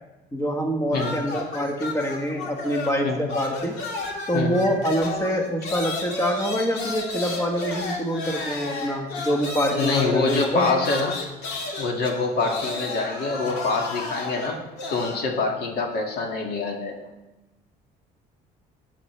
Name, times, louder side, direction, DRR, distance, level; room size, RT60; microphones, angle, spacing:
voice 1, 0.3-3.8 4.3-10.7, equal, 15° left, 2 dB, 1.5 m, -25 dB
sound 1, 0.9-3.0 3.3-15.2, left 3 dB, 85° left, 2.1 m, -32 dB
voice 2, 0.9-1.2 3.0-3.2 4.3-4.6 9.7-11.2 11.8-14.6 14.9-17.1, left 3 dB, 70° left, 1 dB, 2.1 m, -25 dB
15.5 x 9.9 x 3.3 m, 1.1 s
cardioid pair, 110°, 17 cm